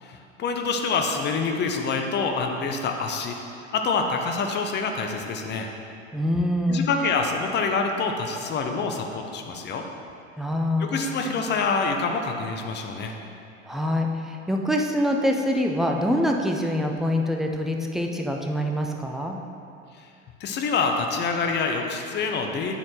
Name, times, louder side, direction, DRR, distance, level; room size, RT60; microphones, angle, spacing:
voice 1, 0.0-3.4 3.7-5.7 6.7-9.9 10.8-13.2 20.0-20.1 20.4-22.8, left 4 dB, 25° left, 4 dB, 0.7 m, -26 dB
voice 2, 6.1-6.9 10.4-11.1 13.7-19.4, left 1 dB, ahead, 1 dB, 0.4 m, -25 dB
7.9 x 4.2 x 6.0 m, 2.5 s
figure-of-eight pair, 80°, 39 cm